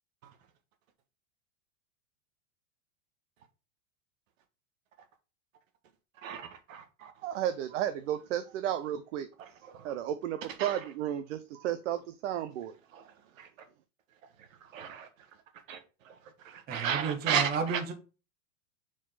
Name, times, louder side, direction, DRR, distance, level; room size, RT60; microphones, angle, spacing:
voice 1, 6.2-7.1 9.4-9.9 10.6-10.8 12.9-13.0 13.4-13.5 14.7-15.1 15.7-15.8 16.0-16.1 16.4-17.9, right 8 dB, 80° right, 1.5 m, -34 dB
voice 2, 7.2-9.3 9.8-12.7, right 11 dB, 65° right, 0.8 m, -33 dB
voice 3, 16.7-17.9, right 5 dB, 25° right, 1.1 m, -32 dB
4.9 x 4.5 x 5.8 m
supercardioid pair, 150°, 39 cm